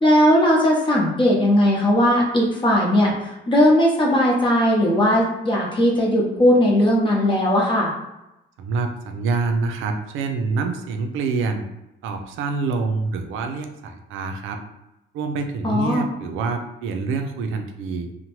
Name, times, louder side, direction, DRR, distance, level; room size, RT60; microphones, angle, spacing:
voice 1, 0.0-7.9 15.6-16.1, equal, 25° left, -4 dB, 0.8 m, -18 dB
voice 2, 8.6-11.6 12.0-14.6 15.1-18.1, right 4 dB, 85° right, 5 dB, 0.4 m, -26 dB
2.8 x 2.1 x 3.0 m, 0.90 s
cardioid pair, 90°, 20 cm